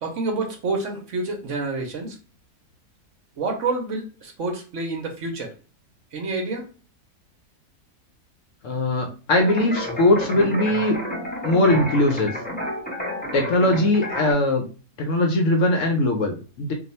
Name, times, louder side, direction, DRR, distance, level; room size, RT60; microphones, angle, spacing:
voice 1, 0.0-2.2 3.4-5.5 6.1-6.7, right 3 dB, 60° right, 2 dB, 0.9 m, -28 dB
voice 2, 8.6-11.0 11.4-12.4 13.3-14.7 15.0-16.7, left 1 dB, 65° left, 3 dB, 0.9 m, -20 dB
jsyd windpluck, 9.4-14.3, left 1 dB, 10° left, 0.5 m, -30 dB
2.6 x 2.3 x 4.1 m, 0.36 s
omnidirectional pair, 1.7 m